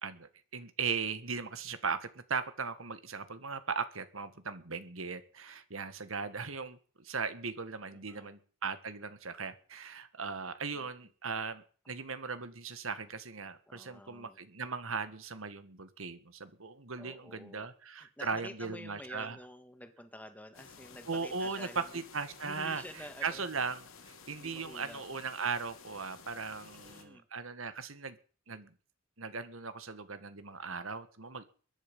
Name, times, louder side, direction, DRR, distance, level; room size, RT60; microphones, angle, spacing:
voice 1, 0.0-19.4 21.1-22.8 23.2-28.2 28.5-28.7 29.2-31.4, right 5 dB, 85° right, 11 dB, 1.7 m, -38 dB
voice 2, 7.9-8.4 13.7-14.4 17.0-17.7 18.0-22.0 22.4-23.4 24.3-25.0 26.6-27.2, left 1 dB, 10° left, 8 dB, 1.7 m, -50 dB
sound 1, 20.5-27.0, left 5 dB, 85° left, 2.7 m, -54 dB
22.0 x 10.5 x 5.4 m, 0.42 s
head